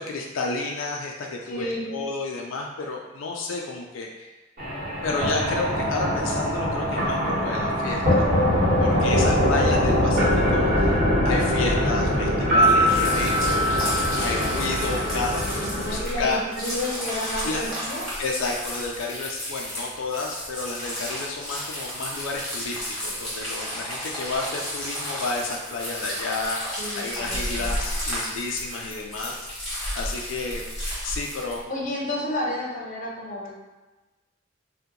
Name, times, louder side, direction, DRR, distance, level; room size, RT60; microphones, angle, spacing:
voice 1, 0.0-4.3 5.0-8.3 8.8-11.0 11.2-16.4 17.4-17.7 18.2-26.6 27.0-29.4 29.6-30.7 31.0-31.7, left 3 dB, 85° left, 0 dB, 0.4 m, -31 dB
voice 2, 1.5-1.9 15.5-18.1 26.8-27.7 31.7-33.5, left 1 dB, 40° left, -4 dB, 0.7 m, -31 dB
sound 1, 4.6-15.9, equal, 45° right, 1.4 m, -23 dB
sound 2, 12.4-16.5 16.8-16.9, equal, 20° right, 0.5 m, -25 dB
sound 3, 12.6-31.6, equal, 5° left, 1.4 m, -32 dB
2.7 x 2.2 x 3.6 m, 1.1 s
head